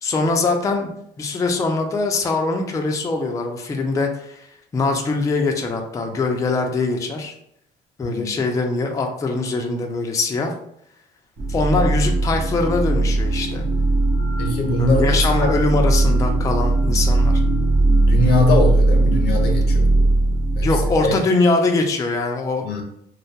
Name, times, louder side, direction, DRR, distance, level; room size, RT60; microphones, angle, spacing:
voice 1, 0.0-4.5 4.7-7.3 8.0-10.5 11.5-13.7 14.8-17.4 20.6-22.8, left 3 dB, 20° left, 2 dB, 0.3 m, -22 dB
voice 2, 8.0-8.4 14.4-15.5 18.0-20.1 20.6-21.1 22.6-22.8, left 2 dB, 75° left, 3 dB, 0.6 m, -22 dB
sound 1, 11.4-21.2, right 2 dB, 45° right, 0.7 m, -19 dB
2.2 x 2.1 x 2.7 m, 0.73 s
cardioid pair, 110°, 17 cm